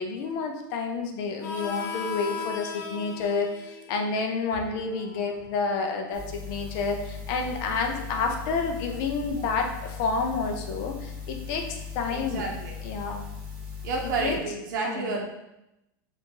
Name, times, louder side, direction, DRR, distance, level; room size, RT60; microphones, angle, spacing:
voice 1, 0.0-12.4 12.8-13.2 14.0-14.4 14.8-15.2, left 4 dB, 40° left, 3 dB, 0.5 m, -29 dB
Harmonica, 1.4-6.7, left 6 dB, 70° left, 0.9 m, -39 dB
sound 1, 6.1-14.4, left 6 dB, 10° right, 0.9 m, -38 dB
voice 2, 12.1-12.7 13.8-15.3, right 4 dB, 65° right, 0 dB, 1.0 m, -30 dB
4.8 x 2.5 x 3.8 m, 0.89 s
supercardioid pair, 170°, 11 cm